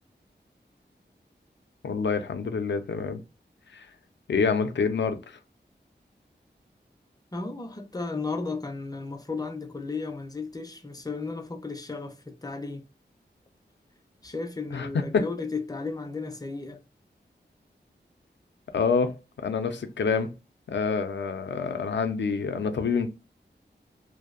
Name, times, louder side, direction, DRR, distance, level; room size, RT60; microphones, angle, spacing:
voice 1, 1.8-3.2 3.7-3.9 4.3-5.4 14.7-15.3 18.7-20.3 20.7-23.1, left 5 dB, 80° left, 0.4 m, -27 dB
voice 2, 7.3-12.9 14.2-16.8, left 3 dB, 20° left, 0.5 m, -34 dB
2.6 x 2.0 x 2.3 m
wide cardioid pair, 65°, 18 cm